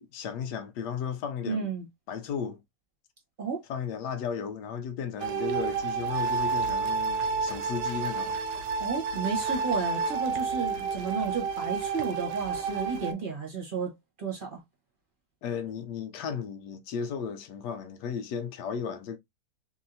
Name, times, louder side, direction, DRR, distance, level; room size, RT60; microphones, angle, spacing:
voice 1, 0.0-1.7 2.1-2.6 3.7-8.3 15.4-19.2, left 7 dB, 85° left, 1.2 m, -35 dB
voice 2, 1.5-1.9 3.4-3.6 8.8-14.6, right 5 dB, 35° right, 1.1 m, -32 dB
sound 1, 5.2-13.1, right 5 dB, 80° right, 1.1 m, -30 dB
3.1 x 2.7 x 2.6 m
omnidirectional pair, 1.8 m